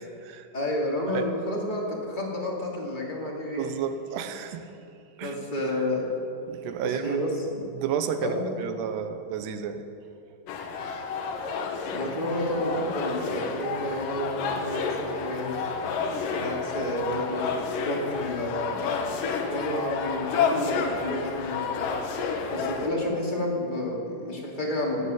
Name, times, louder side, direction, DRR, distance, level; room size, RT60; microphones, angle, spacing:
voice 1, 0.0-0.5 1.1-1.2 3.6-4.7 5.2-5.3 6.5-7.2 7.8-9.8, right 7 dB, 80° right, 8 dB, 2.9 m, -31 dB
voice 2, 0.5-3.7 5.2-6.1 6.8-7.5 8.2-8.5 11.8-15.6 16.3-17.5 17.8-18.8 19.5-22.0 22.5-25.1, left 1 dB, 15° left, -3 dB, 1.8 m, -30 dB
sound 1, 10.5-22.9, left 5 dB, 65° left, 2.5 m, -30 dB
18.0 x 8.1 x 8.9 m, 2.6 s
omnidirectional pair, 4.8 m